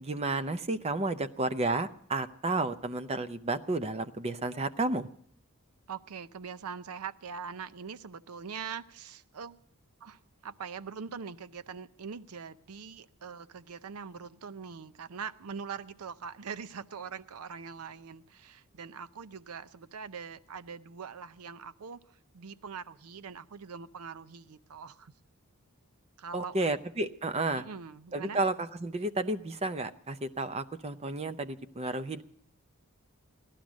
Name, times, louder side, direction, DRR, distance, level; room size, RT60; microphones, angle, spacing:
voice 1, 0.0-5.1 26.3-27.6 28.1-32.2, right 2 dB, 30° right, 11 dB, 0.6 m, -32 dB
voice 2, 5.9-9.6 10.0-25.1 26.2-26.6 27.5-28.4, right 6 dB, 80° right, 14 dB, 0.6 m, -42 dB
16.5 x 12.0 x 6.2 m, 0.64 s
head